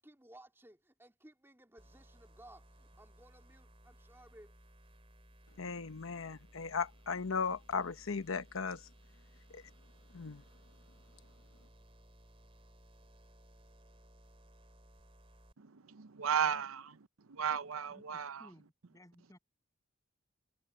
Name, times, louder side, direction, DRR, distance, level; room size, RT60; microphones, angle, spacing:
voice 1, 0.0-4.5, right 1 dB, 10° right, 3.0 m, -59 dB
sound 1, 1.8-15.5, right 1 dB, 25° right, 3.3 m, -60 dB
voice 2, 5.6-8.8 9.5-9.6 10.1-10.4, left 5 dB, 75° left, 0.9 m, -37 dB
voice 3, 15.6-17.0 17.3-18.5, right 8 dB, 90° right, 0.7 m, -35 dB
voice 4, 17.9-19.4, equal, 15° left, 7.9 m, -60 dB
head